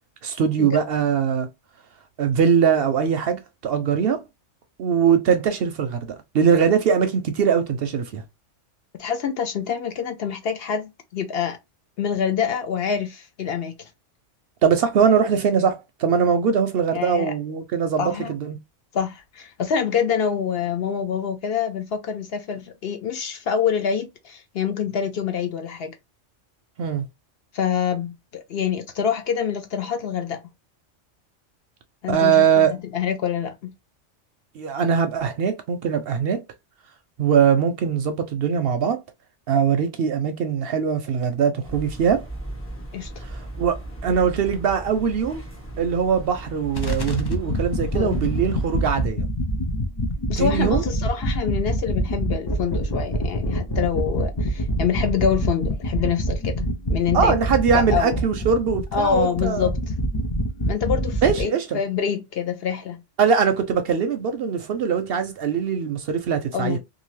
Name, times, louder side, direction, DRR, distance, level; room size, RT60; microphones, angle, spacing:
voice 1, 0.2-1.5 2.2-4.2 4.8-8.2 14.6-18.6 26.8-27.0 32.1-32.8 34.5-36.4 37.2-39.0 39.5-42.2 43.2-45.4 45.8-49.3 50.4-50.8 57.1-59.7 61.2-61.8 63.2-66.8, right 7 dB, 65° right, 0.7 m, -21 dB
voice 2, 9.0-11.6 12.0-13.9 16.9-17.3 18.0-18.3 18.9-25.9 27.5-30.4 32.0-32.7 32.9-33.7 42.9-43.2 47.9-48.2 50.3-57.4 57.7-58.2 58.9-59.9 60.7-63.0 66.5-66.8, left 7 dB, 60° left, 0.7 m, -26 dB
sound 1, 41.6-49.1, right 1 dB, 10° left, 0.8 m, -36 dB
sound 2, 46.7-61.4, equal, 35° left, 0.4 m, -26 dB
2.7 x 2.5 x 3.1 m
omnidirectional pair, 1.2 m